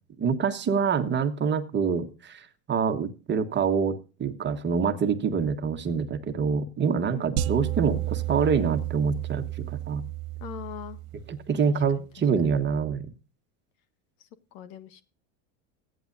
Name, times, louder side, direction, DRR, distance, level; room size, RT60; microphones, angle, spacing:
voice 1, 0.2-10.0 11.3-13.1, right 6 dB, 25° right, 6 dB, 1.4 m, -26 dB
sound 1, 7.4-11.7, right 15 dB, 85° right, 0.9 m, -32 dB
voice 2, 10.4-11.0 12.0-12.1 12.4-12.5 14.5-15.0, left 11 dB, 60° left, 11 dB, 1.6 m, -41 dB
16.0 x 9.6 x 2.6 m, 0.33 s
supercardioid pair, 115°, 40 cm